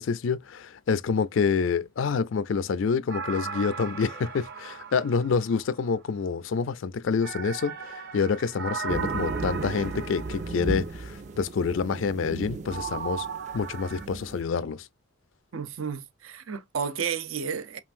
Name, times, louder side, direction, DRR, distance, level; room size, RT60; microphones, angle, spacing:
voice 1, 0.0-13.3 13.5-14.9, left 5 dB, 65° left, 0.4 m, -27 dB
sound 1, 3.1-5.9 7.2-11.0 12.7-14.0, right 6 dB, 55° right, 1.0 m, -37 dB
sound 2, 8.9-14.4, right 3 dB, 35° right, 0.4 m, -35 dB
voice 2, 15.5-17.8, right 7 dB, 75° right, 0.6 m, -32 dB
5.6 x 2.5 x 2.5 m
head